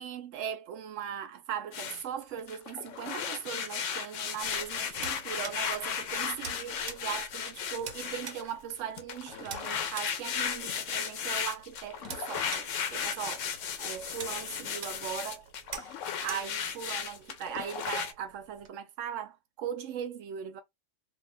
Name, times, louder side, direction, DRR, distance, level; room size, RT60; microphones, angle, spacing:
voice 1, 0.0-13.5 13.8-15.5 15.9-20.6, right 8 dB, 70° right, 0.9 m, -39 dB
sound 1, 1.7-2.0 2.4-8.5 9.0-18.1, left 7 dB, 70° left, 0.9 m, -35 dB
sound 2, 4.4-18.7, right 7 dB, 90° right, 1.1 m, -47 dB
2.6 x 2.3 x 3.3 m
omnidirectional pair, 1.4 m